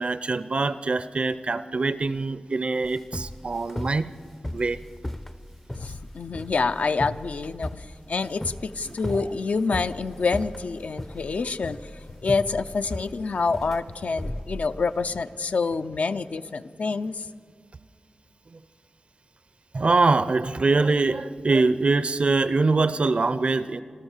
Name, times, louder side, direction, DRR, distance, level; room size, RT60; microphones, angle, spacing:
voice 1, 0.0-4.1 4.5-4.8 9.1-9.2 18.5-18.6 19.7-23.8, right 3 dB, 45° right, 15 dB, 0.6 m, -23 dB
sound 1, 2.8-15.1, left 1 dB, 10° left, 0.5 m, -36 dB
voice 2, 5.8-11.9 12.2-17.3, left 4 dB, 65° left, 10 dB, 0.6 m, -27 dB
26.0 x 13.5 x 7.3 m, 2.1 s
wide cardioid pair, 110°, 3 cm